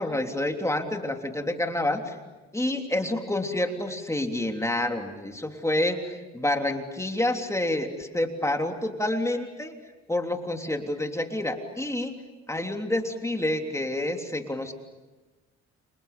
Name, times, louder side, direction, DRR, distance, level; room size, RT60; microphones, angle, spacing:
voice 1, 0.0-2.2 2.5-9.7 10.1-12.1 12.5-14.7, left 1 dB, 10° left, 3 dB, 3.3 m, -28 dB
30.0 x 27.5 x 6.9 m, 1.2 s
cardioid pair, 90°, 30 cm